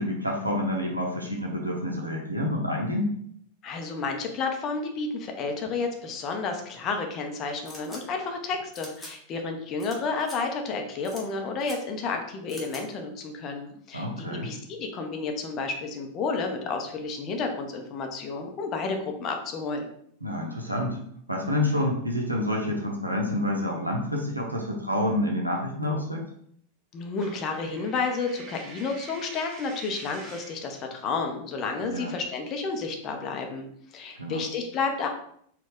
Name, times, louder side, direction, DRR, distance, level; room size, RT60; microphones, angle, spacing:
voice 1, 0.0-3.2 13.9-14.5 20.2-21.0 21.3-26.3 31.8-32.1 34.2-34.4, left 1 dB, 85° right, 0 dB, 0.6 m, -28 dB
voice 2, 3.6-19.9 26.9-33.7 33.9-35.1, left 4 dB, 35° left, 3 dB, 0.6 m, -31 dB
sound 1, 7.7-8.0 8.7-9.1 9.8-10.0 10.2-10.4 11.0-11.2 11.6-11.8 12.5-12.8, equal, ahead, 1.1 m, -43 dB
Coin (dropping), 27.2-30.7, right 3 dB, 35° right, 0.8 m, -46 dB
4.0 x 2.3 x 3.5 m, 0.66 s
figure-of-eight pair, 90°, 0 cm